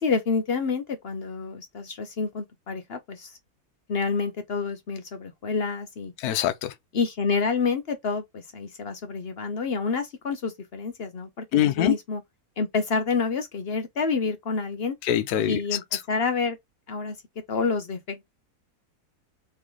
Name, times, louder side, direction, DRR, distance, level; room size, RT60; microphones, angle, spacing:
voice 1, 0.0-3.3 3.9-6.1 6.9-12.2 12.6-15.0 15.4-15.8 16.1-16.6 16.9-17.1 17.5-18.3, left 4 dB, 50° left, 0.8 m, -28 dB
voice 2, 6.2-6.7 11.5-11.9 15.0-16.0, left 11 dB, 75° left, 1.1 m, -24 dB
3.4 x 3.2 x 3.7 m
omnidirectional pair, 1.6 m